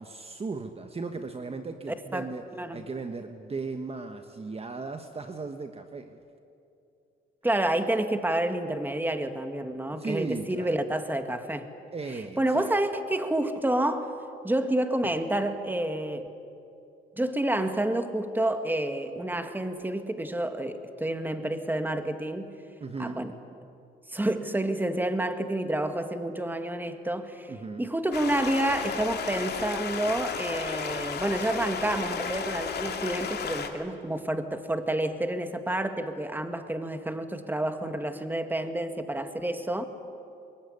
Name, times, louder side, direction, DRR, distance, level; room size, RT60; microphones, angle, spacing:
voice 1, 0.0-6.2 9.9-10.8 11.9-12.7 22.8-23.2 27.5-27.8, right 4 dB, 30° right, 7 dB, 1.4 m, -36 dB
voice 2, 7.4-11.7 12.4-14.1 14.4-16.3 17.2-22.5 23.0-23.3 24.1-27.5 27.8-39.9, right 1 dB, 10° right, 7 dB, 2.0 m, -29 dB
Stream, 28.1-33.7, left 6 dB, 55° left, 2.8 m, -33 dB
24.5 x 22.0 x 9.7 m, 2.6 s
cardioid pair, 90°, 20 cm